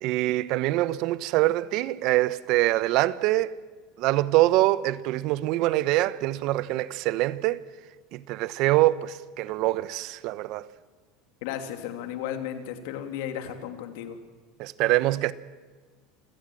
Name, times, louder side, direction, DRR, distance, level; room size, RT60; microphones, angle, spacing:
voice 1, 0.0-3.5 4.0-7.6 8.1-10.7 14.6-15.3, right 17 dB, 60° right, 0.9 m, -24 dB
voice 2, 11.4-14.2, left 10 dB, 70° left, 2.8 m, -34 dB
28.0 x 16.0 x 7.7 m
supercardioid pair, 100°, 0 cm